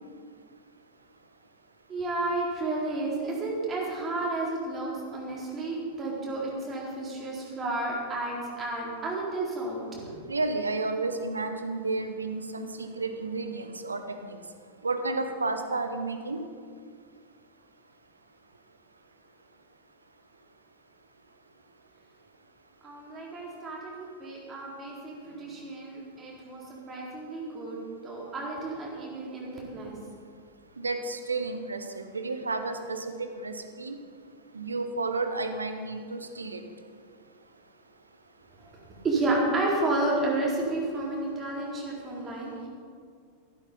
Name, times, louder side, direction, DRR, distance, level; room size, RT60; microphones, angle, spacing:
voice 1, 1.9-10.1 22.8-26.6 26.9-27.8 28.0-29.9 39.0-42.7, right 2 dB, 20° right, -4 dB, 4.1 m, -31 dB
voice 2, 10.3-14.4 14.8-16.4 30.8-34.0 34.5-36.6, right 3 dB, 75° right, 8 dB, 1.1 m, -32 dB
13.5 x 12.0 x 5.4 m, 2.2 s
figure-of-eight pair, 90°, 0 cm